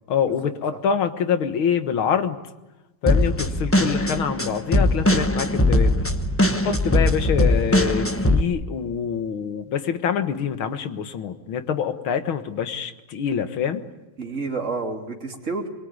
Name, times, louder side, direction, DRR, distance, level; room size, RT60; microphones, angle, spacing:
voice 1, 0.1-2.4 3.0-6.1 6.6-13.8, left 7 dB, 90° left, 10 dB, 2.3 m, -25 dB
sound 1, 3.1-8.4, left 1 dB, 10° left, 0.7 m, -20 dB
voice 2, 14.2-15.7, right 4 dB, 35° right, 1 dB, 3.1 m, -30 dB
24.5 x 22.5 x 9.6 m, 1.0 s
omnidirectional pair, 2.2 m